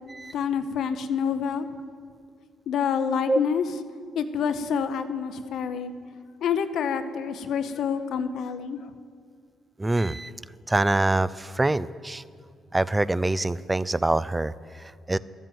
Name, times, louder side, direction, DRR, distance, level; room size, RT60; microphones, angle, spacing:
voice 1, 0.3-1.7 2.7-3.6 4.1-5.9 6.4-8.9, left 7 dB, 75° left, 10 dB, 0.7 m, -27 dB
voice 2, 9.8-10.3 10.7-12.2 12.7-15.2, right 2 dB, 15° right, 17 dB, 0.4 m, -25 dB
13.0 x 9.0 x 7.8 m, 2.2 s
cardioid pair, 90°, 0 cm